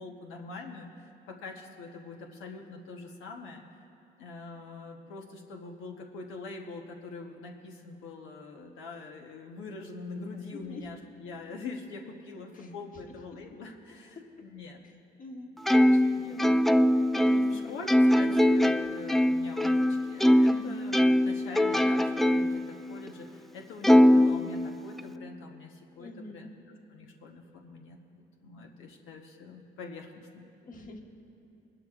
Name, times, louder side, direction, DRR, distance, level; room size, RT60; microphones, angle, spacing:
voice 1, 0.0-3.8 4.2-14.8 15.7-16.4 17.2-26.5 26.9-30.4, left 3 dB, 90° left, 1 dB, 1.1 m, -44 dB
voice 2, 10.5-10.9 12.5-12.7 13.3-13.6 15.2-15.6 16.1-16.7 17.2-17.7 18.8-18.9 20.5-20.8 26.0-26.5 30.6-31.0, left 2 dB, 45° left, 2 dB, 1.4 m, -46 dB
Plucked string instrument, 15.7-20.6 20.9-22.6 23.1-23.2 23.8-25.0, left 1 dB, ahead, 0.3 m, -22 dB
21.5 x 12.0 x 2.5 m, 2.9 s
cardioid pair, 90°, 20 cm